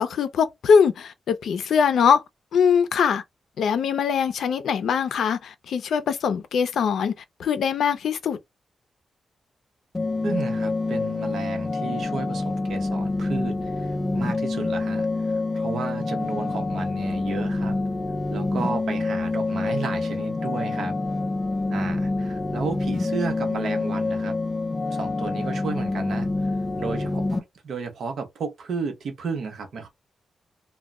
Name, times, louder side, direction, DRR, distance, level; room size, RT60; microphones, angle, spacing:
voice 1, 0.0-2.2 2.5-3.2 3.6-7.1 7.4-8.4, left 6 dB, 90° left, 0.4 m, -22 dB
sound 1, 9.9-27.4, left 2 dB, 20° left, 0.4 m, -27 dB
voice 2, 10.2-17.8 18.3-20.9 21.7-24.4 24.9-26.5 26.8-29.9, right 4 dB, 70° right, 0.7 m, -33 dB
2.2 x 2.0 x 3.5 m
wide cardioid pair, 170°, 0 cm